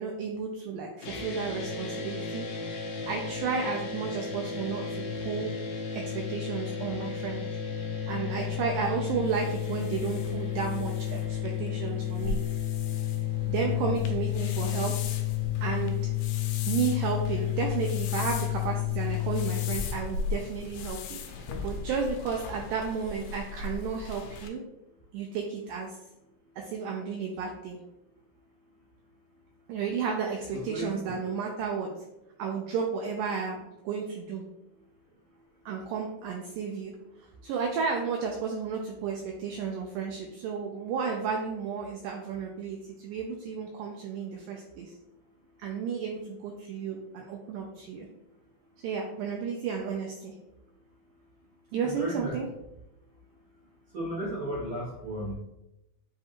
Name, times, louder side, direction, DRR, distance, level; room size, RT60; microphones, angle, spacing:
voice 1, 0.0-2.5 3.1-5.5 5.9-7.5 8.1-12.6 13.5-14.9 15.6-16.0 16.7-24.6 25.1-26.0 26.6-27.8 29.7-31.9 32.4-34.4 35.7-36.9 37.2-44.9 45.6-48.1 48.8-50.3 51.7-52.5, right 6 dB, 90° right, 1 dB, 1.8 m, -33 dB
sound 1, 1.0-19.8, left 10 dB, 70° left, 1.9 m, -32 dB
sound 2, 8.3-24.5, left 4 dB, 85° left, 2.5 m, -39 dB
voice 2, 13.6-14.1 30.5-31.3 51.8-52.4 53.9-55.4, equal, 70° right, -8 dB, 1.6 m, -35 dB
7.2 x 2.4 x 2.9 m, 0.91 s
omnidirectional pair, 4.3 m